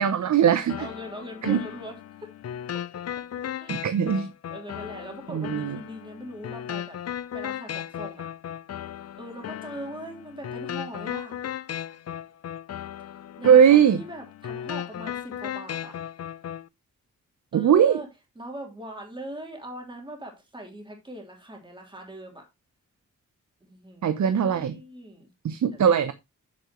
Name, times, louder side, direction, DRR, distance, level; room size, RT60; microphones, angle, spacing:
voice 1, 0.0-0.9 1.4-1.6 3.7-4.3 5.3-5.8 13.4-14.0 17.5-18.0 24.0-24.8 25.4-26.1, right 8 dB, 75° right, 0.8 m, -20 dB
sound 1, 0.7-16.7, left 10 dB, 60° left, 0.5 m, -36 dB
voice 2, 0.8-2.3 2.7-2.8 3.6-3.8 4.5-7.0 7.3-8.3 9.2-11.4 13.4-16.0 17.5-18.1 18.4-22.4 23.6-25.3 25.7-25.8, right 1 dB, 15° right, 3.2 m, -40 dB
8.8 x 7.7 x 3.0 m
wide cardioid pair, 115°, 29 cm